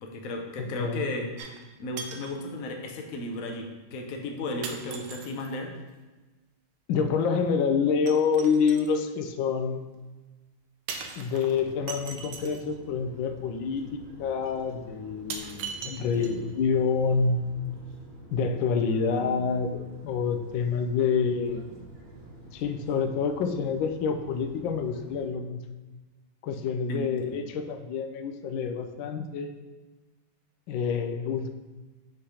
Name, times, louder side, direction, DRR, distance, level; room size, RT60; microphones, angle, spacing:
voice 1, 0.0-1.3 1.8-5.7 16.0-16.4 26.9-27.4, left 2 dB, 60° left, 2 dB, 0.9 m, -35 dB
voice 2, 0.6-1.0 6.9-9.9 11.2-17.4 18.3-21.6 22.5-25.6 26.4-29.5 30.7-31.5, left 5 dB, 80° left, 6 dB, 1.3 m, -27 dB
sound 1, 1.4-1.7 2.0-2.4 3.3-3.4 4.6-5.5 8.1-9.0 10.9-12.7 13.8-13.9 14.5-14.6 15.3-16.6 16.9-17.0, right 6 dB, 70° right, 1.2 m, -39 dB
sound 2, 11.4-25.3, equal, 55° right, 0.7 m, -49 dB
5.7 x 3.3 x 5.6 m, 1.2 s
omnidirectional pair, 2.1 m